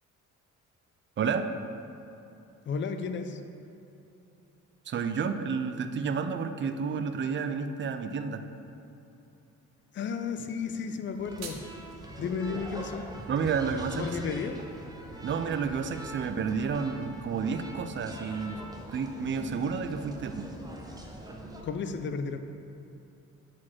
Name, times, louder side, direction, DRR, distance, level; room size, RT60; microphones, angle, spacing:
voice 1, 2.7-3.4 9.9-11.6 12.2-13.1 14.0-14.6 21.6-22.4, left 5 dB, 40° left, 7 dB, 0.5 m, -33 dB
voice 2, 4.9-8.4 13.3-14.1 15.2-18.6 18.9-20.5, right 5 dB, 40° right, 8 dB, 0.4 m, -30 dB
sound 1, 10.9-12.0, right 5 dB, 60° right, 0.8 m, -45 dB
sound 2, 11.2-21.6, right 1 dB, 15° right, 0.8 m, -43 dB
4.7 x 4.3 x 5.7 m, 2.9 s
cardioid pair, 90°, 30 cm